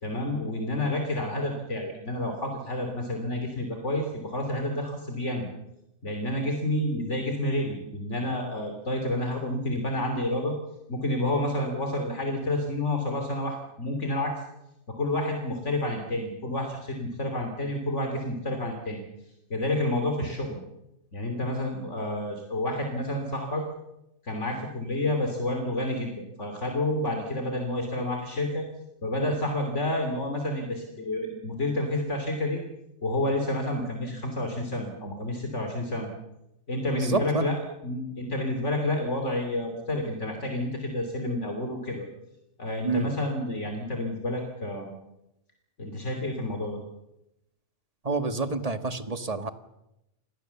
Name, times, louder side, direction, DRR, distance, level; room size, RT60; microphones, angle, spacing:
voice 1, 0.0-5.5 6.0-10.5 10.9-14.3 15.0-19.0 19.5-20.6 21.1-23.6 24.2-28.7 29.0-32.6 33.0-36.1 36.7-37.6 37.8-42.1 42.6-44.9 45.8-46.8, left 1 dB, 75° left, 4 dB, 3.4 m, -29 dB
voice 2, 36.9-37.5 42.8-43.1 48.0-49.5, right 4 dB, 30° right, 9 dB, 1.6 m, -28 dB
28.5 x 20.0 x 7.1 m, 0.89 s
omnidirectional pair, 1.3 m